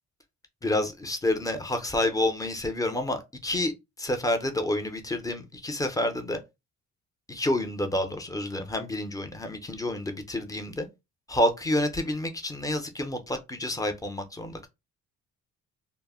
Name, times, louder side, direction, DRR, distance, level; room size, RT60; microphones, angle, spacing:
voice 1, 0.6-3.7 4.0-6.4 7.3-10.9 11.3-14.7, left 1 dB, 10° left, 0.6 m, -29 dB
2.0 x 2.0 x 3.5 m
cardioid pair, 90°, 30 cm